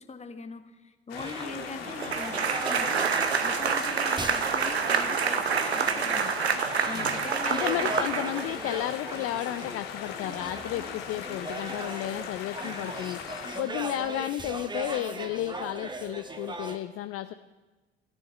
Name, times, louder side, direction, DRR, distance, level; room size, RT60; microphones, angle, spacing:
voice 1, 0.0-3.1 3.4-6.4 6.9-8.0, left 4 dB, 20° left, 10 dB, 1.3 m, -41 dB
sound 1, 1.1-13.6, left 7 dB, 70° left, 1.7 m, -39 dB
sound 2, 1.2-16.8, right 2 dB, 15° right, 1.2 m, -38 dB
sound 3, 2.0-8.7, right 6 dB, 85° right, 0.7 m, -27 dB
voice 2, 6.9-13.2 13.6-17.3, left 13 dB, 45° left, 11 dB, 0.6 m, -33 dB
13.5 x 7.1 x 9.3 m, 1.2 s
figure-of-eight pair, 55°, 31 cm